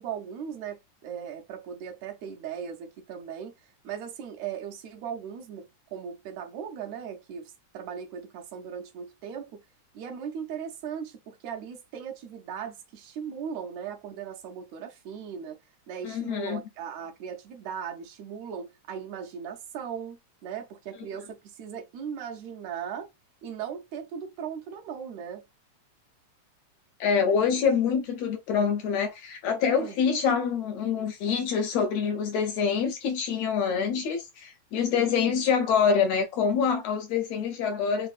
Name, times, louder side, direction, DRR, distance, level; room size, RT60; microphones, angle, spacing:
voice 1, 0.0-9.6 9.9-15.6 15.9-23.1 23.4-25.4 29.8-30.2, right 7 dB, 80° right, 1.7 m, -38 dB
voice 2, 16.0-16.6 27.0-38.1, left 6 dB, 75° left, 1.6 m, -26 dB
4.7 x 2.5 x 2.3 m
omnidirectional pair, 3.3 m